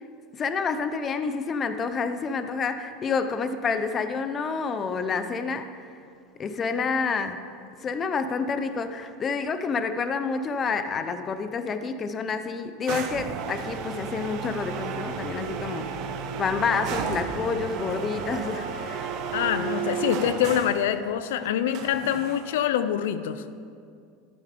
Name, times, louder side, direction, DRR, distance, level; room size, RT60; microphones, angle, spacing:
voice 1, 0.3-5.9 6.4-7.5 7.8-15.9 16.4-19.1, left 5 dB, 25° left, 9 dB, 0.6 m, -28 dB
sound 1, 12.9-20.9 21.7-22.7, right 7 dB, 50° right, 0.9 m, -33 dB
voice 2, 19.3-23.4, left 10 dB, 85° left, 12 dB, 0.5 m, -25 dB
11.5 x 8.8 x 5.1 m, 2.4 s
supercardioid pair, 145°, 0 cm